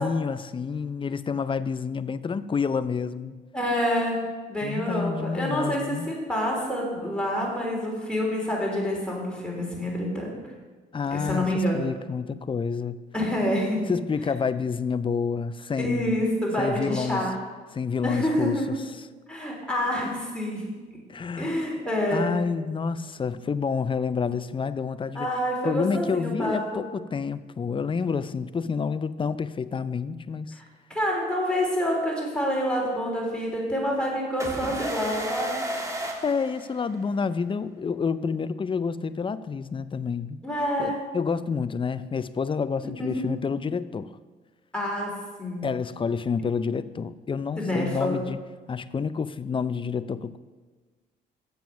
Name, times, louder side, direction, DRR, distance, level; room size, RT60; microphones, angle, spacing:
voice 1, 0.0-3.4 4.6-6.1 10.9-13.0 13.9-16.2 16.6-17.3 17.7-18.8 21.1-21.6 22.1-25.3 25.6-30.6 36.2-40.4 40.8-44.1 45.6-48.4 48.7-50.4, left 5 dB, 25° left, 14 dB, 0.5 m, -29 dB
voice 2, 3.5-4.2 4.5-10.3 11.1-11.8 13.1-13.9 15.8-17.3 18.0-18.7 19.3-20.7 21.4-22.3 25.1-26.8 30.9-35.5 40.4-41.0 42.8-43.5 44.7-45.7 47.6-48.2, equal, 5° left, -3 dB, 3.4 m, -27 dB
sound 1, 34.4-37.2, equal, 15° right, 1.4 m, -32 dB
7.8 x 7.2 x 5.8 m, 1.3 s
cardioid pair, 75°, 19 cm